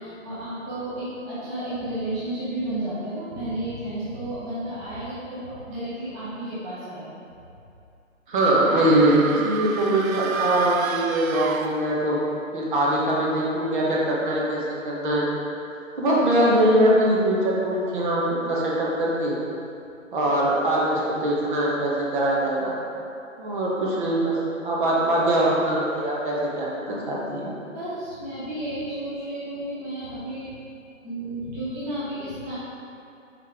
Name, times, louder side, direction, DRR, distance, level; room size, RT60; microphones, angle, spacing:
voice 1, 0.0-7.1 27.7-30.5 31.0-32.5, right 1 dB, 10° right, -13 dB, 0.9 m, -32 dB
voice 2, 8.3-12.2 12.5-14.6 14.8-15.2 16.0-18.2 18.5-19.4 20.1-22.7 23.4-24.3 24.6-27.5, right 1 dB, 40° right, -5 dB, 1.3 m, -22 dB
sound 1, 8.6-12.3, right 6 dB, 80° right, 0.6 m, -31 dB
5.4 x 5.1 x 3.6 m, 2.6 s
hypercardioid pair, 150°, 40 cm